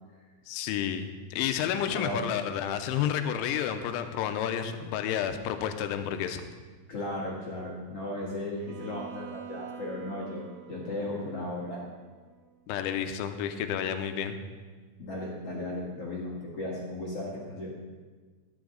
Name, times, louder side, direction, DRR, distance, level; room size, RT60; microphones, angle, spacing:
voice 1, 0.5-6.4 12.7-14.4, left 9 dB, 85° left, 8 dB, 3.0 m, -30 dB
voice 2, 1.8-2.3 6.9-11.8 15.0-17.7, left 1 dB, 55° left, -5 dB, 1.7 m, -36 dB
Bowed string instrument, 8.6-12.6, right 9 dB, 90° right, 3.4 m, -47 dB
14.5 x 9.7 x 3.9 m, 1.4 s
omnidirectional pair, 5.6 m